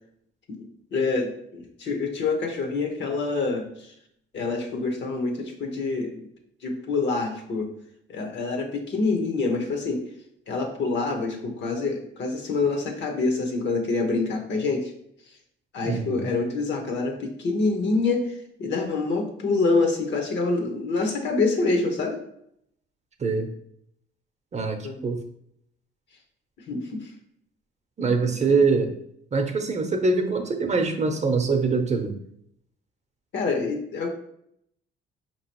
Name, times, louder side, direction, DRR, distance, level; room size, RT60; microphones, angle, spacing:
voice 1, 0.5-3.9 4.3-6.3 6.6-7.7 8.1-10.0 10.5-14.9 15.7-22.2 24.8-25.0 26.7-27.1 33.3-34.1, left 3 dB, 65° left, 3 dB, 1.0 m, -26 dB
voice 2, 15.8-16.3 23.2-23.5 24.5-24.8 25.0-25.2 28.0-28.9 29.3-32.1, right 4 dB, 35° right, 5 dB, 0.6 m, -23 dB
4.9 x 3.0 x 2.9 m, 0.72 s
cardioid pair, 90°, 20 cm